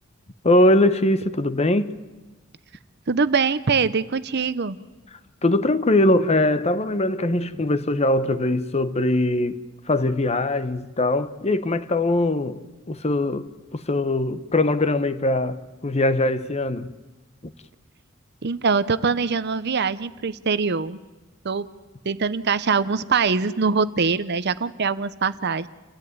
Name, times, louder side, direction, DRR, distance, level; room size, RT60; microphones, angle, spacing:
voice 1, 0.4-1.9 5.4-9.6 9.9-12.6 12.9-16.9 17.4-17.5, left 1 dB, 30° left, 0.9 m, -21 dB
voice 2, 3.1-4.8 18.4-21.0 21.4-21.7 22.0-25.7, right 5 dB, 55° right, 0.8 m, -23 dB
28.5 x 14.0 x 9.5 m
head